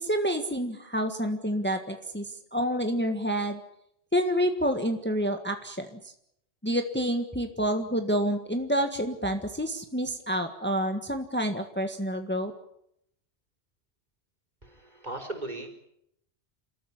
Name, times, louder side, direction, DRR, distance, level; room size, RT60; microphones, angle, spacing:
voice 1, 0.0-3.6 4.1-6.1 6.6-12.5, equal, 10° left, 5 dB, 1.6 m, -28 dB
voice 2, 14.6-15.7, right 2 dB, 40° right, 5 dB, 4.7 m, -37 dB
29.5 x 14.0 x 10.0 m, 0.78 s
omnidirectional pair, 1.1 m